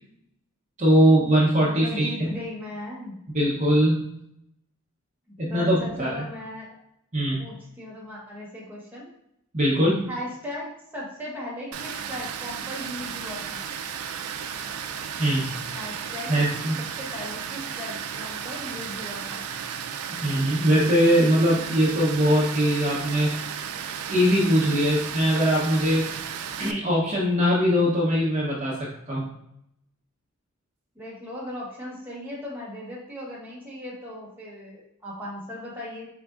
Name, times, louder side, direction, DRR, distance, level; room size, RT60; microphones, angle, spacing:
voice 1, 0.8-2.3 3.3-4.0 5.4-6.2 7.1-7.4 9.5-10.1 15.2-15.6 16.3-16.8 20.2-23.3 24.1-26.1 26.6-29.3, equal, 35° right, -6 dB, 0.7 m, -21 dB
voice 2, 1.5-3.3 5.5-6.8 7.4-9.1 10.1-13.6 15.7-16.4 16.8-19.4 30.9-36.1, left 1 dB, 10° right, -5 dB, 1.2 m, -37 dB
Water, 11.7-26.7, right 7 dB, 85° right, 0.4 m, -34 dB
4.3 x 3.7 x 2.4 m, 0.79 s
head